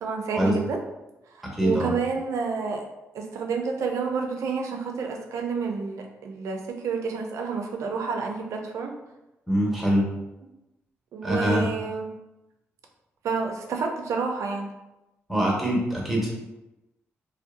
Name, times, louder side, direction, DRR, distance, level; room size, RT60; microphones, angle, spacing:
voice 1, 0.0-0.8 1.3-2.8 3.1-8.9 11.1-12.1 13.2-14.7, right 5 dB, 75° right, 3 dB, 0.4 m, -29 dB
voice 2, 1.5-1.9 9.5-10.0 11.2-11.6 15.3-16.3, equal, ahead, -3 dB, 0.9 m, -23 dB
2.6 x 2.1 x 2.5 m, 0.96 s
cardioid pair, 65°, 5 cm